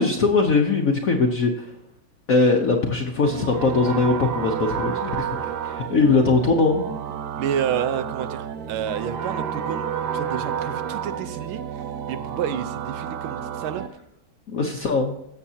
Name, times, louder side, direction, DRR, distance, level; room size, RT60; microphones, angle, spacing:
voice 1, 0.0-1.7 2.3-6.8 14.5-15.2, left 3 dB, 55° left, 1 dB, 1.1 m, -21 dB
sound 1, 3.2-13.9, right 8 dB, 65° right, 1.2 m, -30 dB
voice 2, 7.4-11.6 12.1-13.8, right 9 dB, 85° right, 11 dB, 1.6 m, -29 dB
17.5 x 7.1 x 2.8 m, 0.81 s
omnidirectional pair, 2.2 m